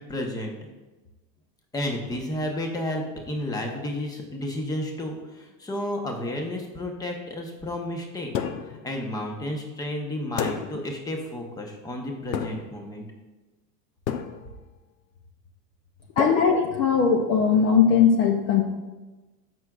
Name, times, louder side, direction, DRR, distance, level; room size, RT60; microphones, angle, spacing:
voice 1, 0.1-0.6 1.7-8.5 8.8-13.1, left 1 dB, 10° left, 2 dB, 0.9 m, -32 dB
sound 1, 8.3-8.9 10.4-11.0 12.3-12.9 14.1-14.7 16.2-17.2, left 8 dB, 90° left, 0.8 m, -30 dB
voice 2, 16.2-18.6, left 6 dB, 30° left, 4 dB, 0.5 m, -19 dB
14.5 x 6.1 x 2.4 m, 1.2 s
supercardioid pair, 145°, 50 cm